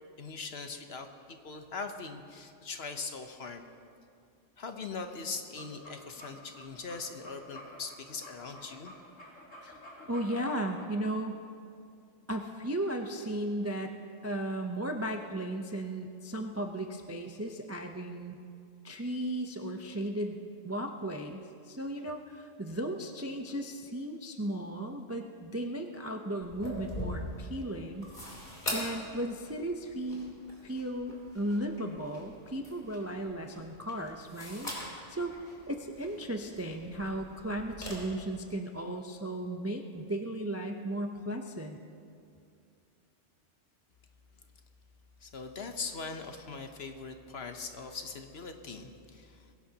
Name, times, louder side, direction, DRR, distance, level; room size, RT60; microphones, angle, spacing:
voice 1, 0.2-3.7 4.6-8.9 45.2-49.5, left 4 dB, 55° left, 6 dB, 1.1 m, -41 dB
sound 1, 5.4-10.9, left 1 dB, 75° left, 3.1 m, -50 dB
voice 2, 10.1-11.4 12.3-13.9 14.2-18.4 18.8-20.4 20.6-28.1 28.7-30.3 30.6-35.3 35.7-41.8, right 1 dB, 20° right, 4 dB, 0.5 m, -35 dB
sound 2, 26.4-37.9, left 1 dB, 35° left, 3.4 m, -43 dB
21.5 x 16.5 x 2.9 m, 2.4 s
omnidirectional pair, 1.3 m